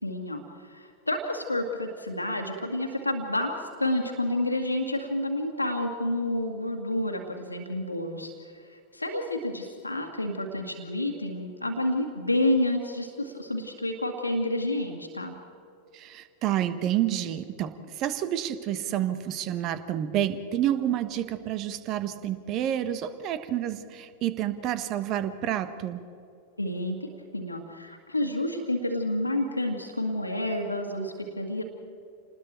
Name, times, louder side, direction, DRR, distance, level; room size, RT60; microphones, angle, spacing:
voice 1, 0.0-15.4 26.6-31.6, left 1 dB, 85° left, 2 dB, 2.0 m, -29 dB
voice 2, 15.9-26.0, right 11 dB, 35° right, 12 dB, 1.4 m, -29 dB
28.0 x 20.5 x 4.5 m, 2.6 s
figure-of-eight pair, 90°, 0 cm